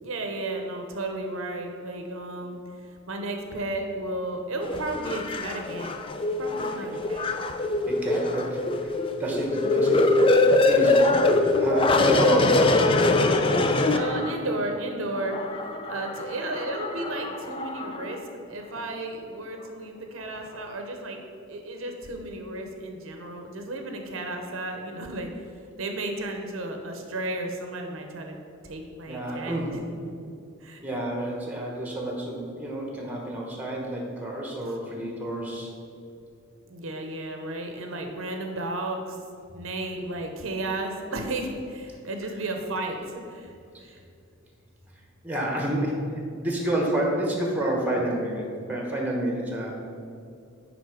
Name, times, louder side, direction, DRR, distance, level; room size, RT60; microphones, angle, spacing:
voice 1, 0.0-6.0 6.4-7.3 13.9-15.4 15.9-18.2 18.5-21.2 21.5-25.3 25.8-28.4 28.6-29.8 30.6-30.8 34.6-34.7 36.6-39.2 39.5-43.5 43.8-44.0, right 2 dB, 70° right, 4 dB, 0.8 m, -33 dB
sound 1, 4.6-14.6 15.1-18.2 18.8-18.9, left 2 dB, 25° left, 0.4 m, -23 dB
voice 2, 7.9-10.1 10.7-13.0 29.1-29.8 30.8-35.7 45.2-49.7, right 1 dB, 10° right, -1 dB, 1.1 m, -29 dB
9.4 x 3.7 x 4.9 m, 2.4 s
head